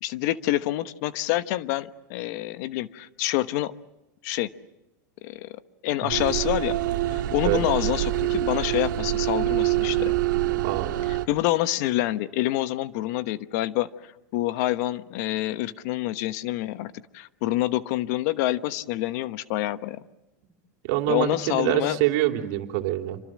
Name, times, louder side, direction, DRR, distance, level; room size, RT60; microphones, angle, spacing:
voice 1, 0.0-3.7 4.2-4.5 5.2-5.5 5.8-6.8 7.1-10.1 11.1-13.9 14.3-20.0 21.1-22.0, left 15 dB, 60° left, 13 dB, 1.1 m, -27 dB
sound 1, 6.1-11.3, right 15 dB, 80° right, 1.8 m, -25 dB
voice 2, 10.5-11.0 20.8-23.2, right 14 dB, 60° right, 4 dB, 3.0 m, -25 dB
27.5 x 25.5 x 7.6 m, 0.92 s
supercardioid pair, 120°, 10 cm